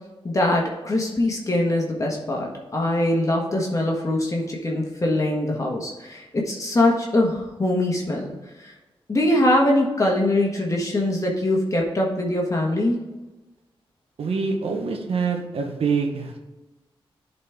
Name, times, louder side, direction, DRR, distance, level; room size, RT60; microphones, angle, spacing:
voice 1, 0.2-8.3 8.6-8.7 9.1-13.0, left 1 dB, 35° left, -1 dB, 1.5 m, -22 dB
voice 2, 14.2-16.4, right 5 dB, 85° right, 2 dB, 1.1 m, -25 dB
11.0 x 4.3 x 3.6 m, 1.1 s
cardioid pair, 75°, 10 cm